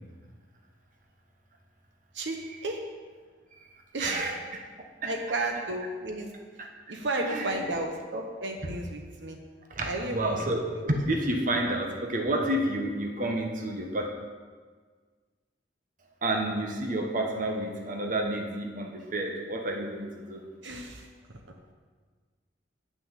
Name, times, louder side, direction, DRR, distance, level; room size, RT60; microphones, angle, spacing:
voice 1, 2.1-2.8 3.9-4.3 5.0-6.3 6.9-9.4 9.8-10.4 20.6-21.1, right 2 dB, 75° right, 3 dB, 1.0 m, -33 dB
voice 2, 4.0-4.4 5.0-5.1 6.6-6.7 7.2-7.7 9.7-14.1 16.2-20.4, right 1 dB, 45° right, 2 dB, 1.1 m, -30 dB
8.7 x 6.1 x 7.4 m, 1.5 s
head